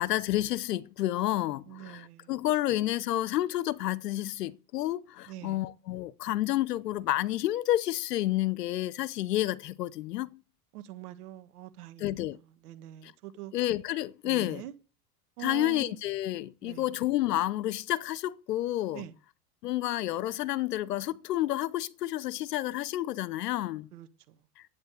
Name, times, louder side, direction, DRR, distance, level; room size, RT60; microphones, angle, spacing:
voice 1, 0.0-10.4 12.0-12.4 13.0-13.1 13.5-14.6 15.4-19.0 19.6-23.9, left 14 dB, 85° left, 0.9 m, -30 dB
voice 2, 1.7-2.3 5.3-5.6 10.7-12.2 12.6-13.5 14.2-14.7 15.4-16.0 16.6-16.9 18.9-19.1 23.9-24.4, right 12 dB, 70° right, 1.8 m, -44 dB
11.0 x 8.7 x 8.3 m
hypercardioid pair, 110°, 47 cm